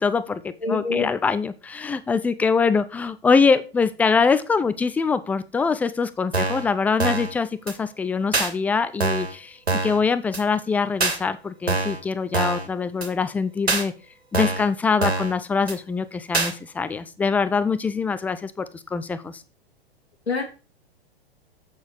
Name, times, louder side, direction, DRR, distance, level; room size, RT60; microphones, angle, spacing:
voice 1, 0.0-9.6 9.8-13.9 14.3-19.4, left 5 dB, 5° left, 14 dB, 0.3 m, -23 dB
voice 2, 0.6-1.1 20.3-20.4, left 4 dB, 85° left, 1 dB, 2.9 m, -25 dB
sound 1, 6.3-6.7 7.0-7.3 7.7-7.8 8.3-8.5 9.0-9.3 9.7-10.0 10.3-10.4 11.0-11.2 11.7-12.0 12.3-12.7 13.0-13.1 13.7-13.8 14.3-14.7 15.0-15.3 15.7-15.8 16.3-16.5, right 3 dB, 90° right, 2.0 m, -24 dB
8.0 x 6.8 x 4.6 m, 0.31 s
figure-of-eight pair, 105°, 31 cm